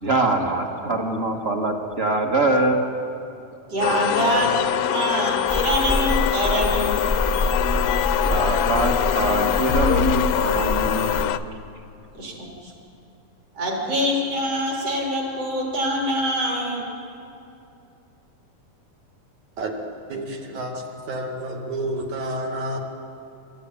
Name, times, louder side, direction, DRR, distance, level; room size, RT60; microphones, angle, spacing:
voice 1, 0.0-2.8 8.2-11.3, right 2 dB, 25° right, 2 dB, 1.5 m, -23 dB
voice 2, 3.7-4.5 4.8-7.0 12.1-12.7 13.5-16.9, equal, 50° right, -2 dB, 4.8 m, -24 dB
sound 1, 3.8-11.4, left 12 dB, 75° left, 1.5 m, -23 dB
sound 2, 5.5-11.2, left 1 dB, 5° left, 1.3 m, -26 dB
voice 3, 20.1-22.8, right 1 dB, 70° right, 1 dB, 3.6 m, -30 dB
27.5 x 14.0 x 9.1 m, 2.7 s
omnidirectional pair, 3.5 m